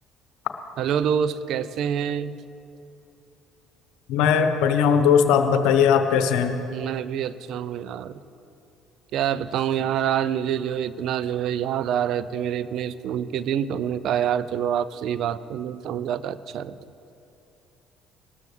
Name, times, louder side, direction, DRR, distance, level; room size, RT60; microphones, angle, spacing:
voice 1, 0.8-2.3 6.7-8.2 9.1-16.7, right 9 dB, 65° right, 15 dB, 0.5 m, -26 dB
voice 2, 4.1-6.6, left 7 dB, 75° left, 7 dB, 0.9 m, -19 dB
19.5 x 12.5 x 3.3 m, 2.7 s
hypercardioid pair, 60°, 0 cm